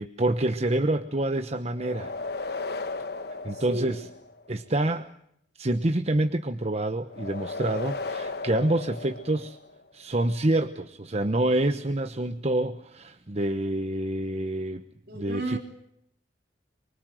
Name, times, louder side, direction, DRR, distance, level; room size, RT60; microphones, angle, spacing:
voice 1, 0.0-2.1 3.4-4.1 4.5-5.1 5.6-9.6 9.9-14.8 15.1-15.6, right 1 dB, 35° right, 8 dB, 1.1 m, -27 dB
sound 1, 1.7-4.5 7.1-9.8, left 3 dB, 65° left, 1.2 m, -35 dB
voice 2, 15.1-15.6, right 1 dB, 65° right, 3 dB, 4.2 m, -32 dB
25.0 x 24.0 x 7.7 m, 0.71 s
head